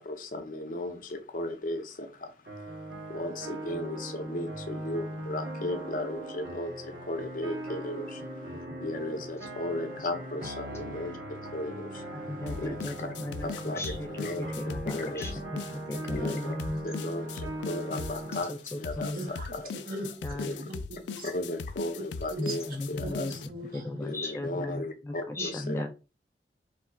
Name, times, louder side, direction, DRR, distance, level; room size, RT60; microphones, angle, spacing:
voice 1, 0.0-13.1 13.4-15.4 16.1-16.5 16.8-19.7 20.3-20.7 21.2-23.7 24.0-25.9, left 1 dB, 50° left, 0.7 m, -36 dB
sound 1, 2.5-18.4, right 1 dB, 70° right, 1.6 m, -39 dB
voice 2, 12.1-14.1 14.4-16.9 18.0-18.1 18.5-18.6 19.0-19.3 20.2-20.7 22.4-23.3 23.7-24.8 25.3-25.9, left 1 dB, 15° left, 0.4 m, -36 dB
sound 2, 12.5-23.5, left 5 dB, 85° left, 0.4 m, -39 dB
voice 3, 19.1-19.5 19.9-20.2 20.6-21.3 22.3-22.5 23.0-24.0 25.4-25.6, right 2 dB, 55° right, 1.4 m, -40 dB
3.2 x 2.8 x 4.5 m
head